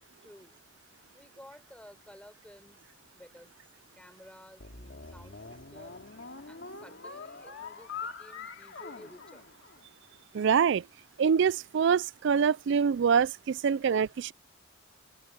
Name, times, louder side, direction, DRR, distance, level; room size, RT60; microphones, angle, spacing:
voice 1, 0.2-0.6 1.1-2.8 3.1-3.5 3.9-9.4, equal, 5° left, 4.7 m, -54 dB
sound 1, 4.6-10.1, left 5 dB, 65° left, 2.5 m, -44 dB
voice 2, 10.3-10.8 11.2-14.3, right 6 dB, 60° right, 0.4 m, -25 dB
open air
head